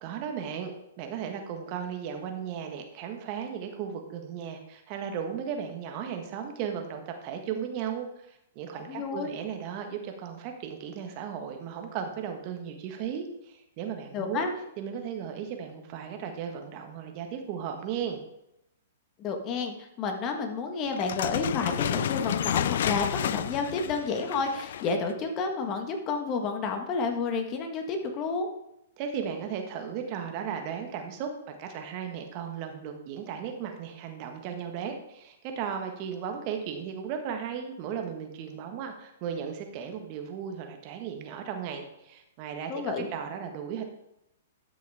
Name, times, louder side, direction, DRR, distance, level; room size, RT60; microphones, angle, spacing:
voice 1, 0.0-14.5 14.8-18.2 29.0-43.8, right 7 dB, 40° right, 4 dB, 1.5 m, -36 dB
voice 2, 8.9-9.3 14.1-14.5 19.2-28.5 42.7-43.1, left 4 dB, 30° left, 5 dB, 1.5 m, -30 dB
sound 1, 20.9-25.1, left 10 dB, 65° left, 0.3 m, -30 dB
13.0 x 6.2 x 3.6 m, 0.82 s
hypercardioid pair, 120°, 0 cm